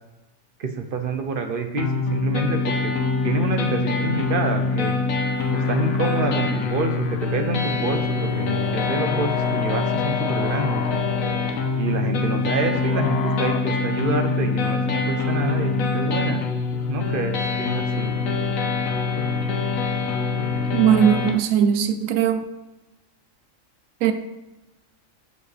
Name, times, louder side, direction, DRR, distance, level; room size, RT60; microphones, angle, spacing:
voice 1, 0.6-2.9 3.2-5.0 5.5-10.8 11.8-16.4 16.9-18.1, right 3 dB, 45° right, 1.0 m, -27 dB
sound 1, 1.8-21.3, left 4 dB, 80° left, 1.3 m, -24 dB
sound 2, 5.3-13.6, left 6 dB, 60° left, 0.4 m, -33 dB
voice 2, 20.7-22.5 24.0-24.1, right 9 dB, 85° right, 1.1 m, -19 dB
13.5 x 4.8 x 3.3 m
omnidirectional pair, 1.4 m